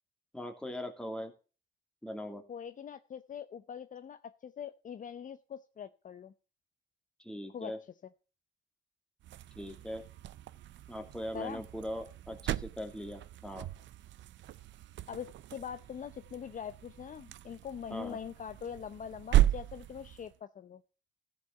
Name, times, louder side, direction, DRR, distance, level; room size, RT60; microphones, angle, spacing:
voice 1, 0.3-1.3 2.0-2.4 7.2-7.8 9.5-10.0 10.9-13.7 17.9-18.2, equal, 5° left, 5 dB, 2.4 m, -40 dB
voice 2, 2.5-6.3 7.5-7.8 11.3-11.6 15.1-20.8, left 8 dB, 40° left, 12 dB, 0.6 m, -43 dB
sound 1, 9.2-20.4, right 14 dB, 70° right, 0.5 m, -35 dB
14.0 x 5.5 x 6.7 m, 0.36 s
cardioid pair, 90°, 20 cm